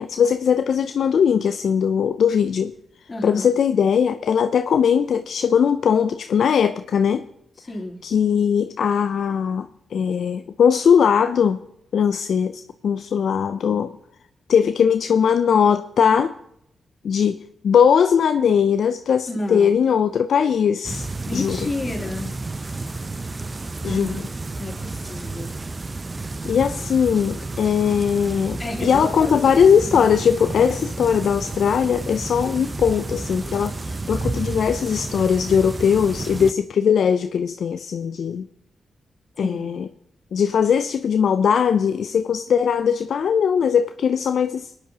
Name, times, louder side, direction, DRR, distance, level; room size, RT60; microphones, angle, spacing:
voice 1, 0.0-2.7 3.2-7.3 8.0-11.6 11.9-13.9 14.5-16.4 17.0-21.7 23.8-24.1 26.4-38.5 39.4-39.9 40.3-44.8, left 7 dB, 75° left, 0.3 m, -20 dB
voice 2, 3.1-3.5 7.6-8.0 19.3-19.8 21.3-22.4 23.8-25.5 28.6-30.1 39.4-39.7, left 2 dB, 35° left, 2.9 m, -31 dB
sound 1, 20.8-36.5, right 3 dB, 35° right, 0.6 m, -31 dB
21.5 x 9.5 x 2.8 m
supercardioid pair, 45°, 0 cm